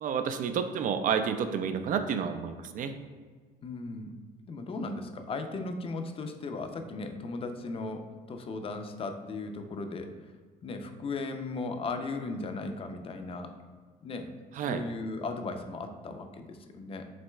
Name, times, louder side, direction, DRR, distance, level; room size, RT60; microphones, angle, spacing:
voice 1, 0.0-2.9 14.6-14.8, right 7 dB, 50° right, 9 dB, 0.4 m, -30 dB
voice 2, 3.6-4.2 4.5-10.1 10.6-13.5 14.0-14.3 14.7-17.0, left 3 dB, 35° left, 6 dB, 0.5 m, -37 dB
7.4 x 3.0 x 2.2 m, 1.5 s
cardioid pair, 110°, 17 cm